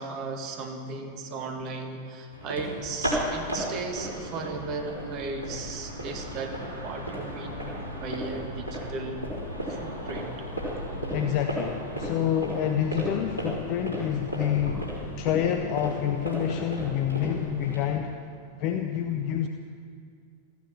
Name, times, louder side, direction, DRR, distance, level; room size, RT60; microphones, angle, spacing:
voice 1, 0.0-9.2 9.7-10.4, right 3 dB, 40° right, 3 dB, 1.7 m, -36 dB
sound 1, 2.3-17.9, equal, 85° left, 3.8 m, -34 dB
voice 2, 11.1-14.9 15.2-18.2 18.6-19.5, left 9 dB, 40° left, 5 dB, 0.7 m, -28 dB
15.0 x 9.4 x 7.6 m, 2.2 s
figure-of-eight pair, 90°, 0 cm